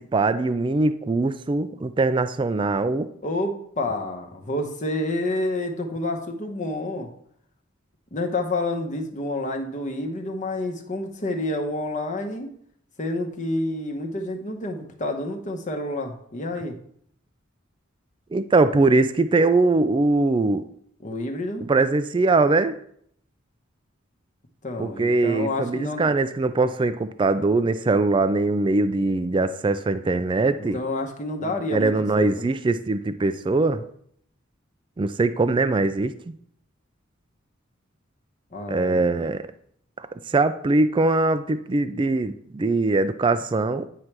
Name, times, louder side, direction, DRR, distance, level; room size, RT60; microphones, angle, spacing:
voice 1, 0.1-3.1 18.3-20.7 21.7-22.8 24.8-30.8 31.7-33.8 35.0-36.3 38.7-39.4 40.3-43.9, right 3 dB, 25° right, 11 dB, 0.3 m, -22 dB
voice 2, 3.2-7.1 8.1-12.5 13.0-16.8 21.0-21.6 24.6-26.1 30.7-32.5 38.5-39.0, left 2 dB, 40° left, 4 dB, 1.0 m, -29 dB
9.5 x 3.3 x 5.9 m, 0.65 s
head